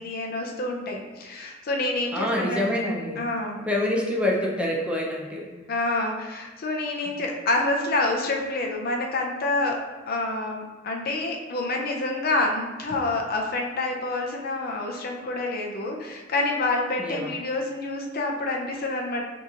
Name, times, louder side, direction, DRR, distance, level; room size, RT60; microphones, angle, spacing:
voice 1, 0.0-2.7 3.2-3.7 5.7-9.8 10.1-19.2, left 2 dB, 50° left, 1 dB, 0.5 m, -27 dB
voice 2, 2.1-3.2 3.7-5.5 17.0-17.3, left 1 dB, 5° right, -2 dB, 0.5 m, -26 dB
6.1 x 2.9 x 2.4 m, 1.2 s
head